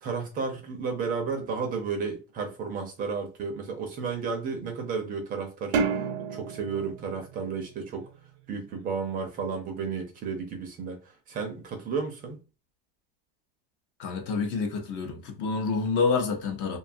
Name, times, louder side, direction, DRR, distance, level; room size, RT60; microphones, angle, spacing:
voice 1, 0.0-6.0 6.3-8.1 8.5-12.4, right 5 dB, 25° right, 0.6 m, -32 dB
sound 1, 5.7-8.3, right 5 dB, 75° right, 0.7 m, -31 dB
voice 2, 14.0-16.8, left 4 dB, 35° left, 0.7 m, -28 dB
2.7 x 2.3 x 2.6 m
supercardioid pair, 140°, 32 cm